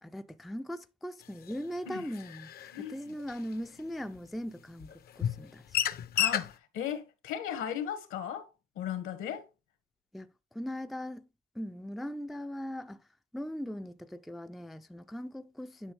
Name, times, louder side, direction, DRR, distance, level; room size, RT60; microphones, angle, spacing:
voice 1, 0.0-5.9 10.1-11.3 11.6-13.0 13.3-15.9, equal, ahead, 0.3 m, -40 dB
sound 1, 1.5-1.6 2.1-2.8 3.2-3.3 4.2-4.3 4.8-4.9 5.2-5.4 5.7-6.5, left 10 dB, 45° left, 0.6 m, -31 dB
voice 2, 2.7-3.1 6.1-8.5 8.8-9.5, left 9 dB, 75° left, 1.8 m, -36 dB
9.9 x 5.5 x 3.3 m
cardioid pair, 130°, 21 cm